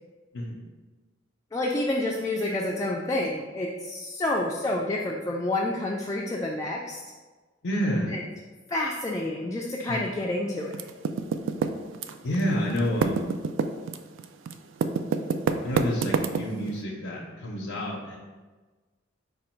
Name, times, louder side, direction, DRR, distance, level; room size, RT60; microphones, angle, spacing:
voice 1, 1.5-7.0 8.1-8.2 8.7-10.9, left 1 dB, 15° left, -2 dB, 0.3 m, -29 dB
voice 2, 7.6-8.2 9.9-10.0 12.2-13.3 15.6-18.2, equal, 90° left, -3 dB, 0.6 m, -29 dB
Typing, 10.7-12.4 12.7-16.7, right 5 dB, 75° right, 0.3 m, -27 dB
5.0 x 2.3 x 4.3 m, 1.3 s
head